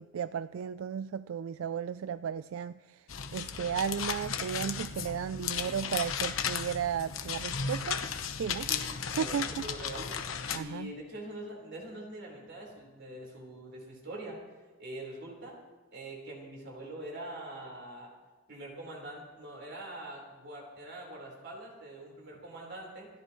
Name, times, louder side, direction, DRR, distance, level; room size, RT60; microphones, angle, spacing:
voice 1, 0.0-3.1 3.3-8.0 8.4-8.7 9.2-9.7 10.5-10.9, right 7 dB, 80° right, 14 dB, 0.3 m, -34 dB
sound 1, 3.1-10.6, left 7 dB, 75° left, 1.0 m, -35 dB
voice 2, 9.2-10.2 10.5-14.4 14.8-15.6 15.9-18.1 18.5-23.1, right 1 dB, 60° right, -2 dB, 4.5 m, -44 dB
27.5 x 12.5 x 3.1 m, 1.3 s
head